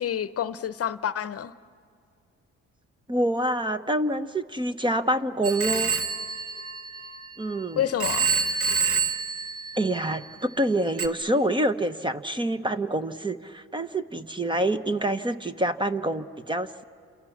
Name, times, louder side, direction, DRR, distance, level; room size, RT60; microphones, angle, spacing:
voice 1, 0.0-1.5 7.8-8.3, left 10 dB, 50° left, 14 dB, 0.8 m, -28 dB
voice 2, 3.1-5.9 7.4-7.8 9.8-16.8, right 1 dB, 15° right, 10 dB, 1.0 m, -26 dB
Telephone, 5.4-7.6 8.0-10.3 11.0-11.1, right 5 dB, 50° right, 1.9 m, -27 dB
29.5 x 27.5 x 7.2 m, 2.3 s
cardioid pair, 90°, 30 cm